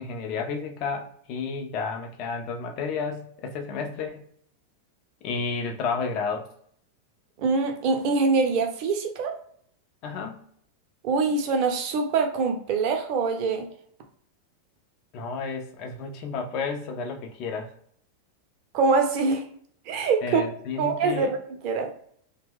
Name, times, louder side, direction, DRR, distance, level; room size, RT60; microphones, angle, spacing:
voice 1, 0.0-4.2 5.2-6.5 10.0-10.4 15.1-17.7 20.2-21.3, left 5 dB, 40° left, 0.5 m, -31 dB
voice 2, 7.4-9.3 11.0-13.7 18.7-19.4 19.9-20.4 20.8-21.4 21.6-21.9, right 4 dB, 40° right, 0.5 m, -24 dB
2.8 x 2.1 x 3.4 m
figure-of-eight pair, 90°, 0 cm